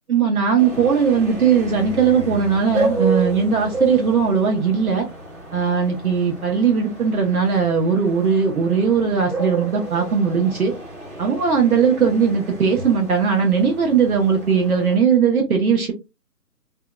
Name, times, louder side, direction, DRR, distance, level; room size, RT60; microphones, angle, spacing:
voice 1, 0.1-5.1 5.5-10.7 11.2-15.9, right 6 dB, 60° right, 0.9 m, -19 dB
sound 1, 0.6-15.0, right 2 dB, 45° right, 1.3 m, -31 dB
2.7 x 2.2 x 2.3 m
hypercardioid pair, 175°, 48 cm